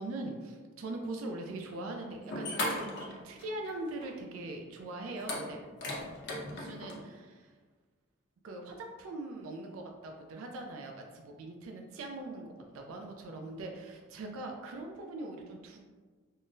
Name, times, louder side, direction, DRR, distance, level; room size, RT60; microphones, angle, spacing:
voice 1, 0.0-5.6 6.5-7.6 8.4-15.8, right 2 dB, 75° right, 2 dB, 0.3 m, -41 dB
sound 1, 1.8-1.9 2.2-3.7 4.0-4.1 5.2-7.0, left 1 dB, 55° left, 0.7 m, -37 dB
3.7 x 2.0 x 2.5 m, 1.4 s
head